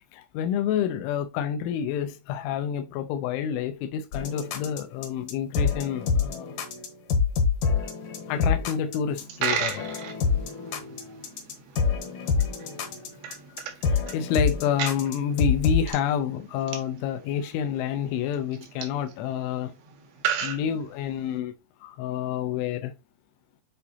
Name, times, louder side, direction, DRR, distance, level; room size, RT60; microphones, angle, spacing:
voice 1, 0.0-6.6 8.3-9.8 13.9-19.7 20.4-21.5 21.8-22.9, left 8 dB, 85° left, 3.2 m, -28 dB
piano hip hop trap loop, 4.1-15.9, left 5 dB, 65° left, 2.1 m, -26 dB
Coin (dropping), 9.1-21.4, right 8 dB, 90° right, 3.7 m, -36 dB
9.7 x 4.0 x 2.8 m
omnidirectional pair, 5.4 m